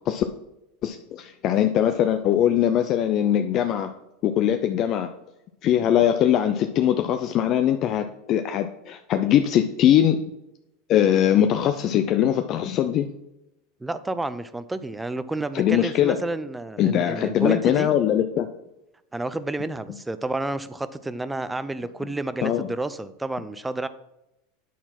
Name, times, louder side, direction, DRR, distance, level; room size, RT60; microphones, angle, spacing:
voice 1, 0.8-3.9 4.2-5.1 5.6-10.2 10.9-13.1 15.5-16.2 16.8-18.5 22.4-22.7, left 10 dB, 45° left, 7 dB, 0.5 m, -21 dB
voice 2, 13.8-17.9 19.1-23.9, right 2 dB, 10° right, 14 dB, 0.5 m, -30 dB
9.2 x 4.1 x 5.9 m, 0.89 s
supercardioid pair, 120°, 0 cm